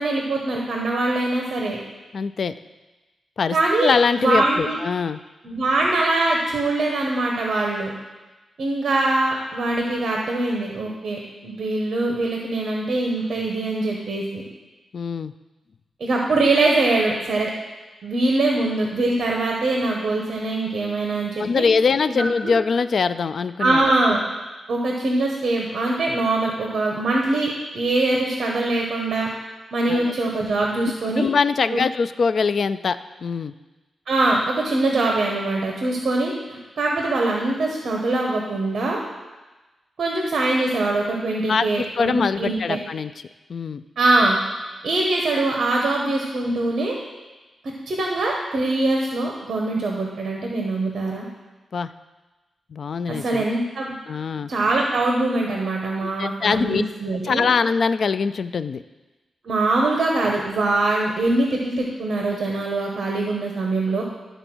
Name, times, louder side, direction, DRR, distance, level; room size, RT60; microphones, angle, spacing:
voice 1, 0.0-1.8 3.5-4.8 5.4-7.9 8.6-14.4 16.0-17.5 18.0-21.6 22.2-22.5 23.6-24.2 24.7-29.3 29.7-31.3 31.7-31.8 34.1-39.0 40.0-42.8 44.0-44.4 44.8-47.0 47.9-51.2 53.1-53.9 54.5-57.5 59.4-64.0, right 2 dB, 55° right, -1 dB, 1.1 m, -23 dB
voice 2, 2.1-2.5 3.4-5.2 14.9-15.3 21.4-23.8 29.9-30.1 30.8-33.5 41.5-43.1 43.5-43.8 51.7-51.9 52.7-53.5 54.1-54.5 56.0-56.8 57.2-58.8, left 5 dB, 50° left, 13 dB, 0.3 m, -23 dB
12.0 x 4.0 x 6.1 m, 1.2 s
wide cardioid pair, 145°, 0 cm